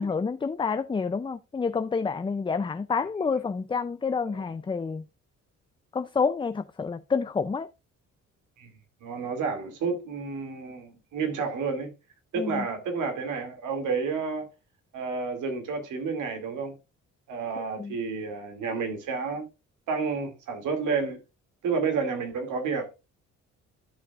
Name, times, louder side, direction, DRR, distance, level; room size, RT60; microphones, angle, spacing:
voice 1, 0.0-5.0 5.9-7.7 12.4-12.6 17.6-17.9, left 5 dB, 15° left, 0.4 m, -28 dB
voice 2, 9.0-11.9 12.3-14.5 14.9-16.7 17.3-19.4 19.9-21.2 21.6-22.9, right 5 dB, 80° right, 2.5 m, -30 dB
13.5 x 5.9 x 2.4 m
cardioid pair, 90°, 30 cm